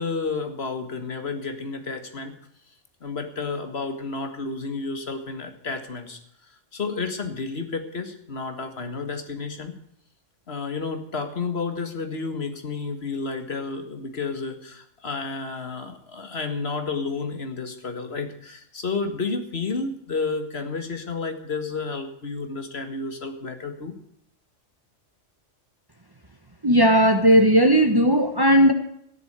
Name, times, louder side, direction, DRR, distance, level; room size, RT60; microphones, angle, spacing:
voice 1, 0.0-2.3 3.0-6.2 6.7-9.7 10.5-23.9, left 4 dB, 55° left, 7 dB, 2.1 m, -31 dB
voice 2, 26.6-28.7, equal, 20° right, 6 dB, 1.1 m, -16 dB
13.5 x 11.0 x 8.1 m, 0.73 s
omnidirectional pair, 1.3 m